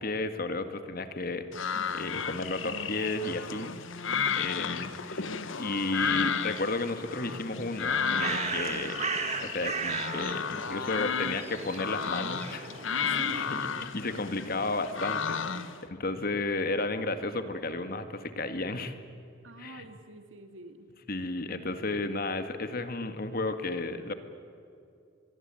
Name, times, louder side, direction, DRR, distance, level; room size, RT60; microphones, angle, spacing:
voice 1, 0.0-3.8 4.4-9.0 9.4-19.0 19.6-19.8 21.1-24.1, left 2 dB, 50° left, 9 dB, 1.9 m, -33 dB
sound 1, 1.5-15.8, left 6 dB, 85° left, 1.2 m, -33 dB
Bird, 7.7-13.7, right 5 dB, 35° right, 1.5 m, -36 dB
voice 2, 13.0-13.5 15.5-15.7 19.4-20.9, right 1 dB, 85° right, 8 dB, 2.3 m, -46 dB
24.5 x 22.0 x 9.0 m, 2.5 s
head